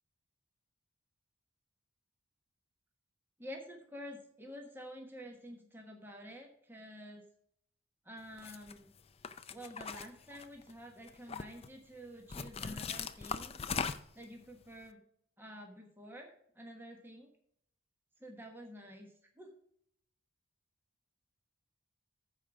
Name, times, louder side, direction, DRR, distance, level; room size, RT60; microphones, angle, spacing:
voice 1, 3.4-7.2 8.0-8.9 9.5-13.5 14.1-15.0 15.4-17.3 18.2-19.5, equal, 10° right, 2 dB, 1.2 m, -49 dB
sound 1, 8.4-8.7 9.2-10.7 11.1-11.7 12.3-14.2, left 6 dB, 25° left, 0.4 m, -39 dB
14.5 x 4.9 x 5.1 m, 0.69 s
head